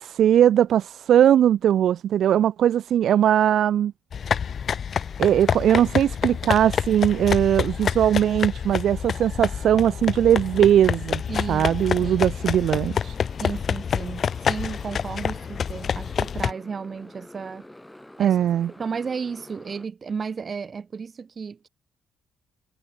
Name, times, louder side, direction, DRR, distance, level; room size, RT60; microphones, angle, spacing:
voice 1, 0.0-3.9 5.2-11.2 11.5-13.2 18.2-18.7, right 10 dB, 70° right, 0.3 m, -20 dB
sound 1, 4.1-16.5, left 7 dB, 50° left, 0.4 m, -27 dB
Motorcycle, 10.1-19.9, left 1 dB, 5° left, 4.8 m, -47 dB
voice 2, 11.3-12.3 13.4-17.7 18.2-18.4 18.8-21.7, right 5 dB, 40° right, 3.5 m, -33 dB
cardioid pair, 90°, 0 cm